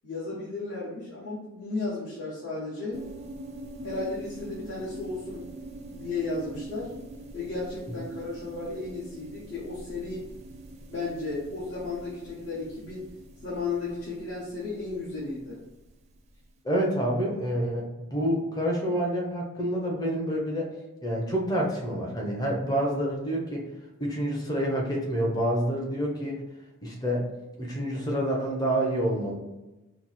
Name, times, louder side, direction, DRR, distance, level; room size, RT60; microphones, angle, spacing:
voice 1, 0.0-3.0 3.8-5.5 5.8-6.9 7.3-10.3 10.9-13.0 13.4-15.6, left 3 dB, 55° left, -8 dB, 1.2 m, -34 dB
sound 1, 2.9-16.3, right 1 dB, 30° right, 0.4 m, -44 dB
voice 2, 16.6-20.7 21.0-23.6 24.0-26.4 26.8-27.3 27.6-29.4, equal, 20° left, -1 dB, 0.8 m, -28 dB
4.5 x 2.0 x 4.1 m, 1.0 s
head